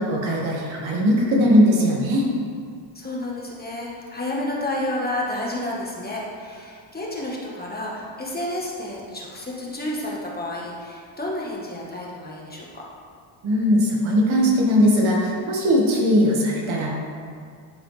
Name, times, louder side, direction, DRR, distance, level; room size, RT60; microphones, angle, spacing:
voice 1, 0.0-2.2 13.4-16.9, equal, 75° right, -2 dB, 1.8 m, -19 dB
voice 2, 2.9-12.8, left 1 dB, 20° left, -4 dB, 1.4 m, -30 dB
12.0 x 4.7 x 3.3 m, 2.1 s
cardioid pair, 115°, 48 cm